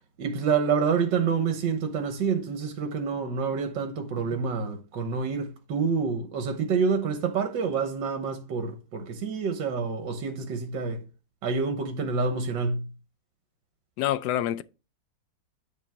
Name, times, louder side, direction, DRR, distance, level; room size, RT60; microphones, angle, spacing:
voice 1, 0.2-11.0 11.4-12.9, right 5 dB, 70° right, 1.7 m, -27 dB
voice 2, 14.0-14.6, left 12 dB, 75° left, 1.1 m, -26 dB
9.9 x 4.8 x 3.6 m
omnidirectional pair, 2.0 m